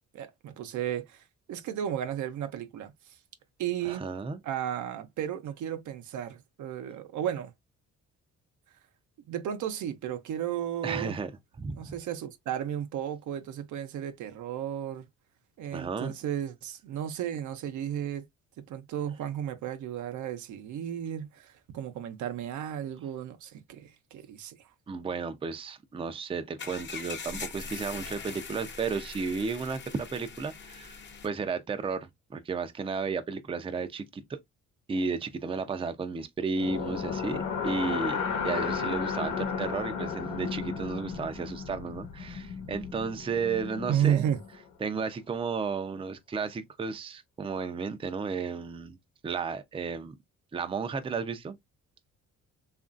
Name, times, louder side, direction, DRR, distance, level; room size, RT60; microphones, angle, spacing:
voice 1, 0.1-1.2 1.5-2.9 3.6-4.0 4.4-7.5 9.3-11.2 11.7-15.1 15.6-18.2 18.7-24.6 43.9-44.4, right 10 dB, 75° right, 0.6 m, -33 dB
voice 2, 3.8-4.4 10.8-11.3 11.6-11.9 15.7-16.1 24.9-31.0 31.2-34.2 34.9-38.2 38.4-44.2 44.8-49.0 49.2-50.1 50.5-51.6, right 5 dB, 20° right, 0.4 m, -33 dB
sound 1, 26.6-31.3, left 5 dB, 35° left, 0.7 m, -41 dB
sound 2, 36.6-44.6, left 6 dB, 85° left, 1.0 m, -34 dB
2.9 x 2.4 x 2.4 m
cardioid pair, 90°, 30 cm